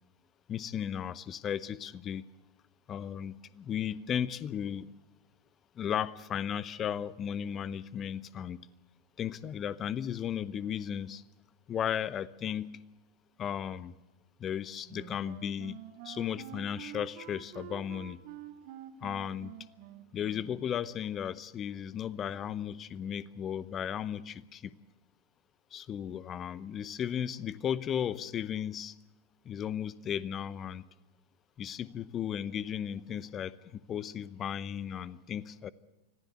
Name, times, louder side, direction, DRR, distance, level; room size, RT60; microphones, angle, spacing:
voice 1, 0.5-2.3 2.9-4.9 5.8-8.7 9.2-11.2 11.7-12.8 13.4-13.9 14.4-18.2 19.0-19.6 20.1-24.7 25.7-28.9 29.4-30.8 31.6-35.7, left 9 dB, 25° left, 20 dB, 0.8 m, -35 dB
Wind instrument woodwind instrument, 14.9-20.7, right 12 dB, 45° right, 1.8 m, -48 dB
25.0 x 15.5 x 8.3 m, 1.0 s
figure-of-eight pair, 90°, 0 cm